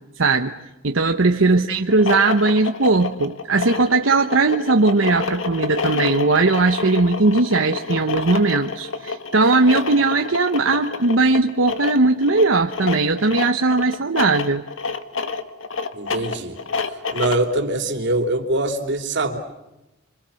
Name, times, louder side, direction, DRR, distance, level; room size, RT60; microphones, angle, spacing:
voice 1, 0.2-0.5 0.8-14.6, right 3 dB, 90° right, 5 dB, 1.0 m, -18 dB
sound 1, 1.8-17.5, left 4 dB, 80° left, 1.7 m, -28 dB
voice 2, 15.9-16.6 17.1-19.4, right 2 dB, 65° right, 5 dB, 3.2 m, -23 dB
27.0 x 26.0 x 7.1 m, 0.97 s
head